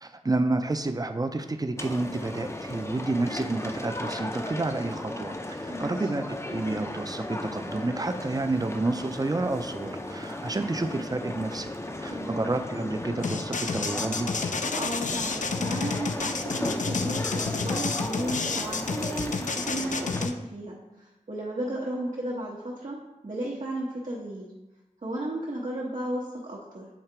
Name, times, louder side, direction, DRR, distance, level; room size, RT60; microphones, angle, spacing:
voice 1, 0.0-11.7 12.0-14.3, right 2 dB, 30° right, 8 dB, 0.5 m, -30 dB
sound 1, 1.8-20.3, left 1 dB, 20° left, 0.5 m, -36 dB
voice 2, 5.7-6.1 12.1-12.5 14.7-23.0 23.2-24.5 25.0-26.9, right 1 dB, 70° right, -6 dB, 1.1 m, -34 dB
sound 2, 13.2-20.3, left 4 dB, 75° left, 0.4 m, -30 dB
7.2 x 2.9 x 4.5 m, 1.0 s
wide cardioid pair, 50°, 13 cm